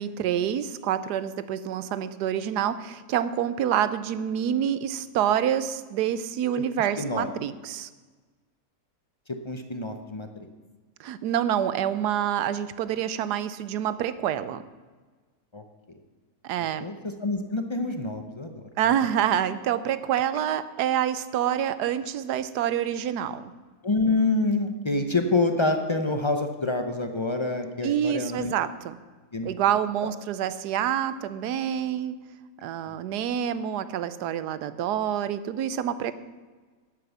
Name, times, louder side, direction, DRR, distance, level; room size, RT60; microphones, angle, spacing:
voice 1, 0.0-7.9 11.0-14.6 16.4-16.9 18.8-23.5 27.8-29.0 29.4-32.2 32.6-36.1, right 10 dB, 85° right, 14 dB, 1.2 m, -27 dB
voice 2, 7.0-7.3 9.3-10.5 15.5-15.6 16.8-17.0 17.2-18.6 23.8-28.5 29.3-29.5 32.9-33.0, left 2 dB, 35° left, 6 dB, 0.4 m, -27 dB
10.0 x 8.4 x 7.2 m, 1.4 s
omnidirectional pair, 1.7 m